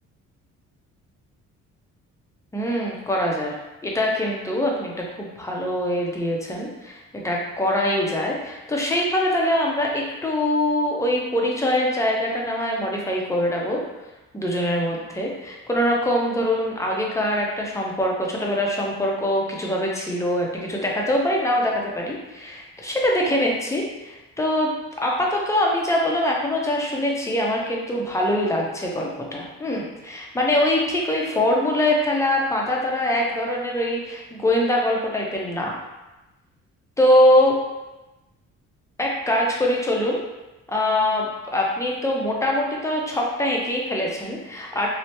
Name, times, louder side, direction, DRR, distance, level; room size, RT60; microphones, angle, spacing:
voice 1, 2.5-3.6 3.8-13.8 14.3-24.7 25.0-35.8 37.0-37.5 39.0-40.2 40.7-44.9, left 1 dB, 10° left, -2 dB, 0.6 m, -23 dB
3.2 x 2.0 x 2.9 m, 1.0 s
cardioid pair, 90°, 30 cm